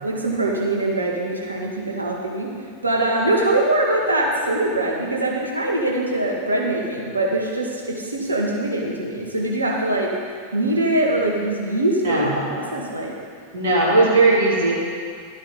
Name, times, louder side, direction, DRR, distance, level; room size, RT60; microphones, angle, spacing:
voice 1, 0.0-2.5 2.8-10.1 10.5-13.2, right 1 dB, 80° right, -1 dB, 1.9 m, -23 dB
voice 2, 13.5-14.7, right 2 dB, 60° right, -4 dB, 3.3 m, -17 dB
12.5 x 8.8 x 5.5 m, 2.1 s
figure-of-eight pair, 90°, 0 cm